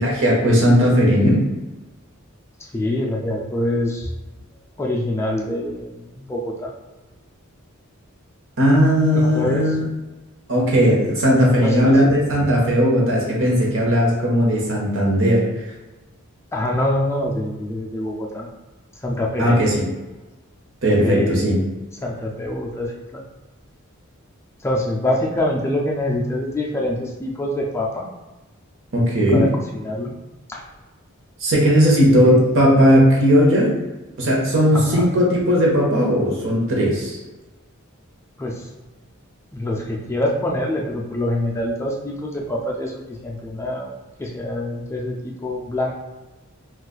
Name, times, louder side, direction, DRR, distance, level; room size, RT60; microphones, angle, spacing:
voice 1, 0.0-1.4 8.6-9.9 10.5-15.4 19.4-19.8 20.8-21.6 28.9-29.4 31.4-33.7 34.2-37.2, equal, 65° right, -3 dB, 0.9 m, -17 dB
voice 2, 2.6-4.1 4.8-6.7 9.1-9.8 11.2-12.0 16.5-18.5 19.0-19.7 20.9-21.5 22.0-23.2 24.6-28.1 29.3-30.1 30.5-30.6 32.1-32.4 34.7-35.1 38.4-38.7 39.5-43.9 44.2-45.9, left 1 dB, 10° left, -1 dB, 0.3 m, -25 dB
2.4 x 2.4 x 3.8 m, 1.1 s
head